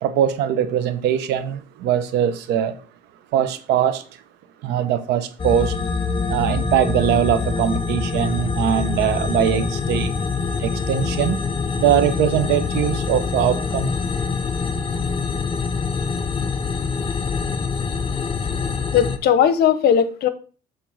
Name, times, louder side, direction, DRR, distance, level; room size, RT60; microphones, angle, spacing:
voice 1, 0.0-2.8 3.3-4.0 4.6-5.8 6.3-10.1 10.6-11.4 11.8-13.9 17.8-17.9, right 10 dB, 85° right, 0.9 m, -21 dB
sound 1, 5.4-19.2, left 5 dB, 30° left, 0.7 m, -25 dB
voice 2, 18.9-20.3, left 8 dB, 70° left, 0.9 m, -17 dB
7.6 x 3.3 x 5.7 m
cardioid pair, 110°, 17 cm